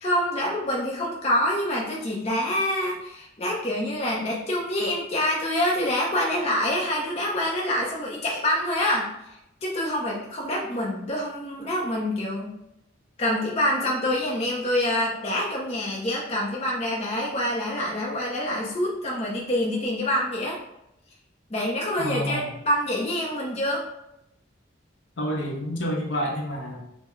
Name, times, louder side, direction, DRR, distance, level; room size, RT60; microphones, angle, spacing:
voice 1, 0.0-9.1 9.6-12.5 13.2-20.6 21.5-23.9, left 1 dB, 30° left, -3 dB, 0.6 m, -26 dB
voice 2, 22.0-22.5 25.2-26.8, equal, 65° left, -1 dB, 0.8 m, -29 dB
5.6 x 2.2 x 3.1 m, 0.83 s
head